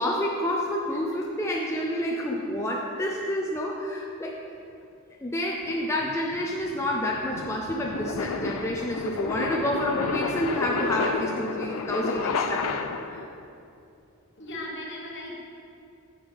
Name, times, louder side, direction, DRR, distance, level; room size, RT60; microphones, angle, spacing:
voice 1, 0.0-4.3 5.2-12.8 13.1-13.2, left 1 dB, 10° left, -2 dB, 0.5 m, -29 dB
sound 1, 5.7-13.3, left 4 dB, 90° left, 0.5 m, -31 dB
voice 2, 14.4-15.4, left 1 dB, 55° left, -2 dB, 1.4 m, -38 dB
8.7 x 7.2 x 3.4 m, 2.6 s
head